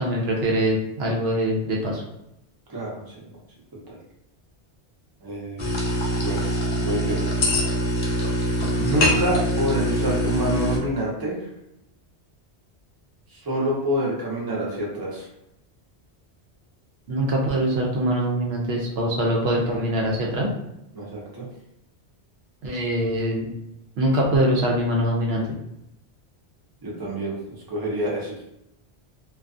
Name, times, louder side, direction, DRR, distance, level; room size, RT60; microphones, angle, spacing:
voice 1, 0.0-2.0 17.1-20.5 22.6-23.5 24.0-25.4, right 1 dB, 70° right, -2 dB, 0.8 m, -23 dB
voice 2, 2.7-3.0 3.9-4.0 5.2-5.8 6.2-6.4 6.8-7.2 8.8-11.4 13.4-15.3 20.9-21.5 26.8-27.4 27.7-28.3, right 1 dB, 25° right, -4 dB, 0.6 m, -27 dB
sound 1, 5.6-10.8, equal, 55° left, 0.7 m, -23 dB
2.3 x 2.2 x 2.5 m, 0.85 s
omnidirectional pair, 1.1 m